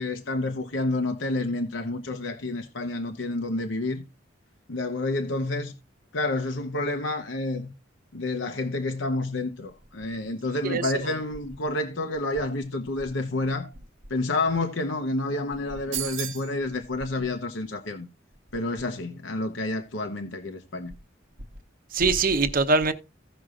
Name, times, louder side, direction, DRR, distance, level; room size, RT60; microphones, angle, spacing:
voice 1, 0.0-4.0 4.7-5.7 6.1-7.7 8.1-13.7 14.1-18.1 18.5-20.9, left 2 dB, 75° left, 0.9 m, -29 dB
voice 2, 10.6-11.1 21.9-22.9, right 3 dB, 45° right, 0.8 m, -23 dB
sound 1, 15.9-16.5, right 13 dB, 90° right, 0.8 m, -32 dB
16.5 x 6.2 x 2.5 m
head